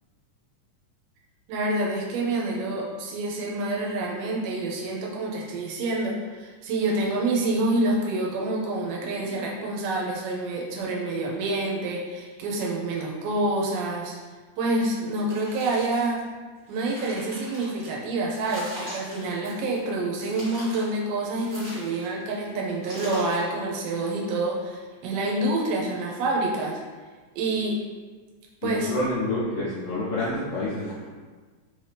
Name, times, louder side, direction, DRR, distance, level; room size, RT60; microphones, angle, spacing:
voice 1, 1.5-14.1 14.6-16.2 16.7-26.8 27.4-27.8 28.6-28.9, right 2 dB, 85° right, -2 dB, 2.4 m, -27 dB
sound 1, 15.1-16.2 16.6-17.9 18.3-19.8 20.2-20.9 21.3-22.2 22.8-23.5, equal, 55° right, 0.5 m, -41 dB
voice 2, 28.6-31.1, left 2 dB, 75° left, -10 dB, 1.3 m, -28 dB
5.1 x 2.8 x 3.3 m, 1.4 s
omnidirectional pair, 3.7 m